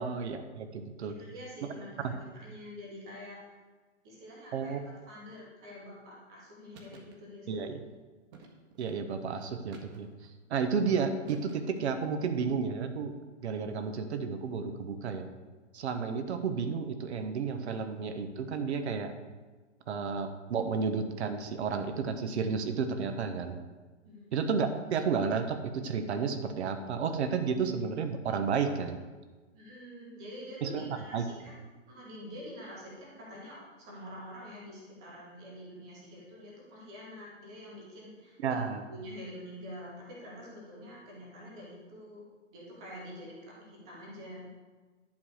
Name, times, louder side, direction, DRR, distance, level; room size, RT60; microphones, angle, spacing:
voice 1, 0.0-1.1 2.0-2.1 4.5-4.8 7.5-7.8 8.8-10.1 10.5-13.1 13.4-15.3 15.7-19.1 19.9-23.6 24.3-29.0 30.6-30.8 31.1-31.2 38.4-38.8, right 5 dB, 60° right, 8 dB, 1.3 m, -32 dB
voice 2, 1.1-3.4 4.0-7.6 24.0-24.3 29.5-38.6 38.9-42.2 42.5-44.5, equal, 5° right, -4 dB, 0.3 m, -47 dB
sound 1, 6.7-7.2 8.3-8.9 9.7-10.3 11.3-11.9, right 4 dB, 35° right, 1.7 m, -53 dB
11.0 x 4.8 x 7.8 m, 1.3 s
hypercardioid pair, 135°, 38 cm